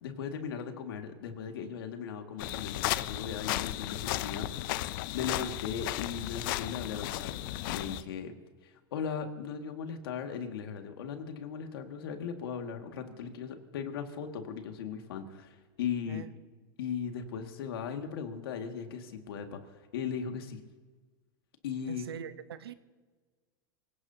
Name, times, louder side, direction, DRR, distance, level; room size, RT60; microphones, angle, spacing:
voice 1, 0.0-4.9 5.1-8.3 8.6-16.2 16.8-20.6 21.6-22.1, left 7 dB, 75° left, 5 dB, 2.0 m, -38 dB
sound 1, 2.4-8.0, left 17 dB, 60° left, 0.5 m, -34 dB
voice 2, 21.9-22.7, right 8 dB, 90° right, 12 dB, 0.9 m, -42 dB
26.0 x 17.5 x 2.8 m, 1.4 s
hypercardioid pair, 120°, 12 cm